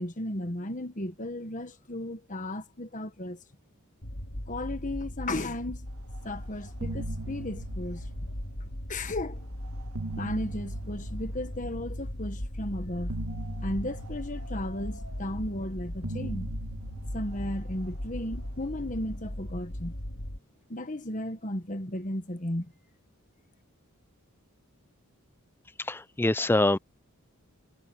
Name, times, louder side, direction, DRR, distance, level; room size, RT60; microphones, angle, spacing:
voice 1, 0.0-3.4 4.5-5.9 6.2-8.1 8.9-9.5 10.2-13.1 13.6-16.5 17.1-20.0 20.7-22.7, left 1 dB, 35° left, 1.4 m, -35 dB
sound 1, 4.0-20.4, equal, 60° left, 2.4 m, -38 dB
sound 2, 6.1-6.4 6.6-9.0 9.6-12.1 13.1-15.5 16.0-18.6, right 2 dB, 85° right, 1.5 m, -41 dB
voice 2, 25.8-26.8, left 2 dB, 10° left, 0.4 m, -25 dB
head